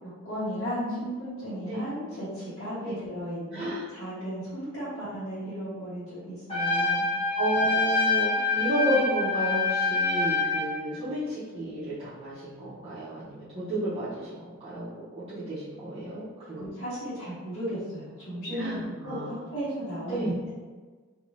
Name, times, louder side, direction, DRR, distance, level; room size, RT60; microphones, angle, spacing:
voice 1, 0.0-7.0 16.4-20.5, equal, 55° left, -15 dB, 1.3 m, -35 dB
voice 2, 3.5-3.9 7.3-14.9 15.2-16.7 18.5-19.5 20.1-20.3, right 1 dB, 30° right, -13 dB, 0.7 m, -32 dB
Trumpet, 6.5-10.7, left 4 dB, 25° left, 0.8 m, -26 dB
2.7 x 2.6 x 3.1 m, 1.4 s
head